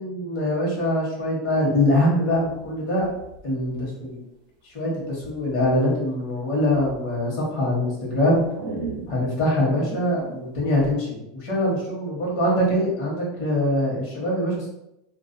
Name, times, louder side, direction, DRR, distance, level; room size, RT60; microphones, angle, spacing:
voice 1, 0.0-3.1 3.4-4.2 4.6-8.4 9.1-14.7, left 1 dB, 55° left, -4 dB, 1.0 m, -23 dB
sound 1, 2.3-4.2 5.2-5.7 6.2-7.0 7.6-11.0, right 3 dB, 75° right, 0.6 m, -38 dB
2.4 x 2.1 x 2.6 m, 0.85 s
supercardioid pair, 165°, 0 cm